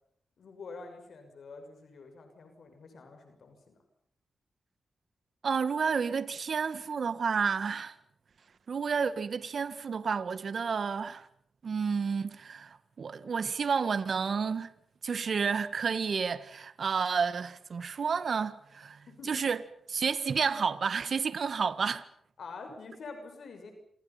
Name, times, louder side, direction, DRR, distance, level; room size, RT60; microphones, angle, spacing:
voice 1, 0.4-3.8 19.1-19.4 22.4-23.7, left 4 dB, 70° left, 6.5 m, -46 dB
voice 2, 5.4-8.0 8.7-11.3 11.6-14.7 15.0-19.6 19.9-22.1, right 5 dB, 60° right, 1.6 m, -30 dB
27.5 x 27.5 x 5.8 m
cardioid pair, 80°, 0 cm